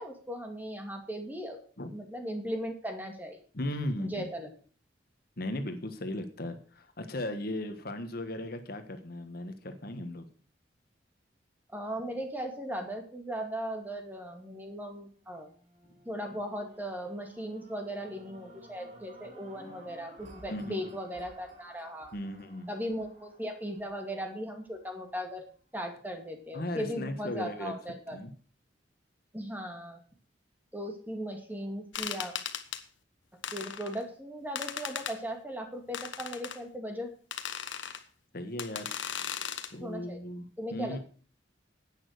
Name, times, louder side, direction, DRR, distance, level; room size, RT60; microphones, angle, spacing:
voice 1, 0.0-1.6 1.9-3.4 4.0-4.5 11.7-15.5 16.1-22.1 22.7-25.4 25.7-28.2 29.3-30.0 30.7-32.3 33.5-37.1 39.8-40.2 40.6-41.0, equal, 10° right, 4 dB, 2.3 m, -38 dB
voice 2, 3.5-4.3 5.4-10.3 15.9-16.0 20.5-20.9 22.1-22.7 26.5-27.7 28.1-28.3 38.3-38.9 39.7-41.0, left 1 dB, 55° left, 8 dB, 1.4 m, -37 dB
sound 1, 15.1-25.4 26.0-26.1, right 1 dB, 40° right, 4.4 m, -56 dB
sound 2, 31.9-32.8 33.4-34.0 34.6-35.2 35.9-36.6 37.3-38.0 38.6-39.7, left 8 dB, 80° left, 1.3 m, -37 dB
11.0 x 8.9 x 6.5 m, 0.41 s
head